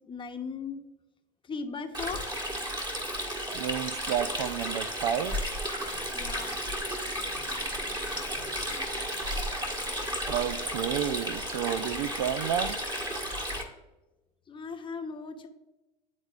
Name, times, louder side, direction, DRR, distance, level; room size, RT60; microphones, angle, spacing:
voice 1, 0.0-0.8 1.4-2.3 6.0-9.1 14.5-15.5, left 5 dB, 25° left, 6 dB, 0.9 m, -40 dB
Stream, 1.9-13.6, equal, 20° right, 1.6 m, -33 dB
voice 2, 3.5-5.4 10.3-12.8, right 10 dB, 80° right, 15 dB, 0.5 m, -31 dB
sound 1, 5.2-11.3, equal, 5° right, 0.6 m, -41 dB
11.0 x 4.1 x 2.4 m, 1.0 s
supercardioid pair, 95°, 20 cm